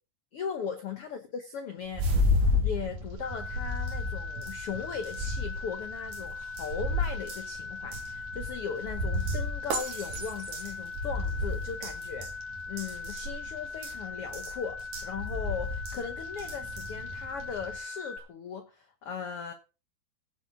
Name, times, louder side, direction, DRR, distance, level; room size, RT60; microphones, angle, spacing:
voice 1, 0.3-2.1 2.6-19.5, left 6 dB, 85° left, 1.2 m, -38 dB
sound 1, 1.9-17.8, left 2 dB, 60° right, 3.7 m, -32 dB
sound 2, 3.2-18.2, left 4 dB, 60° left, 2.3 m, -40 dB
17.0 x 7.7 x 3.7 m
omnidirectional pair, 4.3 m